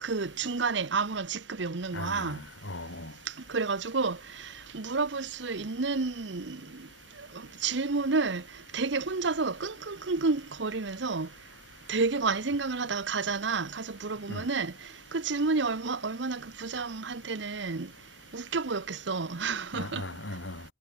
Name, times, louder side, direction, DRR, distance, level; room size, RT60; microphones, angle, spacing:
voice 1, 0.0-2.4 3.5-4.2 4.7-6.6 7.6-8.4 8.7-11.3 11.9-14.7 15.1-17.9 18.3-20.0, right 4 dB, 65° right, 0.9 m, -30 dB
voice 2, 1.9-3.1 14.3-14.5 19.7-20.6, left 2 dB, 75° left, 4.6 m, -38 dB
head